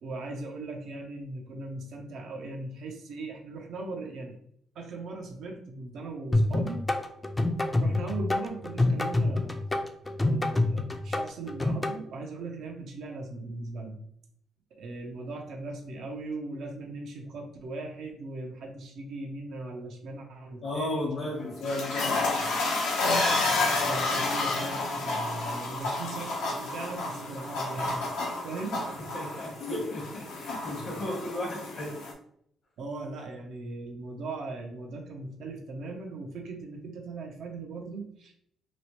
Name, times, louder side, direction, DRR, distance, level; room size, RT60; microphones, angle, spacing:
voice 1, 0.0-4.4 4.7-6.8 7.8-9.6 10.2-14.0 14.8-21.3 23.8-28.1 28.4-28.9 29.2-29.5 32.8-38.3, right 3 dB, 75° right, 1 dB, 0.5 m, -39 dB
sound 1, 6.3-11.9, left 2 dB, 15° left, 0.4 m, -26 dB
voice 2, 20.6-22.4 29.1-31.9, left 1 dB, 55° left, -1 dB, 0.8 m, -34 dB
sound 2, 21.3-32.1, left 3 dB, 90° left, 0.7 m, -30 dB
3.0 x 2.1 x 2.8 m, 0.68 s
cardioid pair, 90°, 0 cm